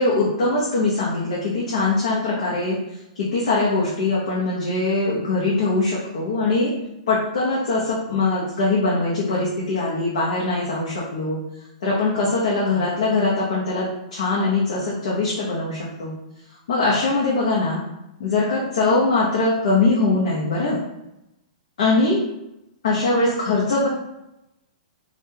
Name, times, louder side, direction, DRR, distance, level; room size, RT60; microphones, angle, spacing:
voice 1, 0.0-2.8 3.3-6.7 7.1-11.4 11.8-16.1 16.7-17.8 18.2-20.8 21.8-22.2 22.8-23.9, left 3 dB, 75° left, -6 dB, 0.9 m, -22 dB
3.6 x 2.5 x 2.8 m, 0.89 s
hypercardioid pair, 165°, 4 cm